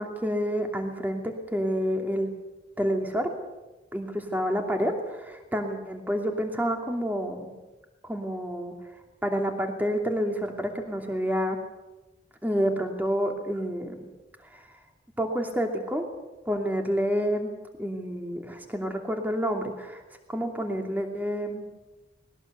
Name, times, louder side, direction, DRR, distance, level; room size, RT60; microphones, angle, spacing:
voice 1, 0.0-2.3 2.8-3.3 3.9-7.5 8.0-8.7 9.2-11.6 12.4-14.1 14.4-14.8 15.2-16.1 16.5-17.5 17.8-20.0 20.3-21.7, equal, 10° right, 3 dB, 2.8 m, -29 dB
20.5 x 18.5 x 8.2 m, 1.1 s
head